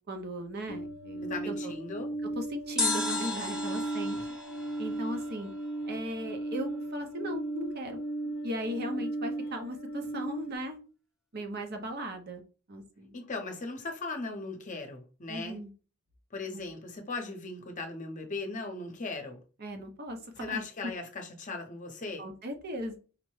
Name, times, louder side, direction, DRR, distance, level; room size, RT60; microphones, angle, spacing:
voice 1, 0.0-1.7 2.3-4.2 4.8-5.5 5.8-10.8 11.3-12.4 12.7-13.2 15.3-15.7 16.5-16.7 19.6-20.6 22.2-23.0, equal, 50° right, 0.7 m, -38 dB
sound 1, 0.7-10.5, right 2 dB, 80° left, 0.6 m, -36 dB
voice 2, 1.2-2.1 13.1-15.6 16.3-19.4 20.4-22.3, left 3 dB, 40° left, 0.7 m, -38 dB
sound 2, 2.8-5.9 6.1-6.2, left 2 dB, 5° right, 0.9 m, -34 dB
5.0 x 2.1 x 3.1 m
head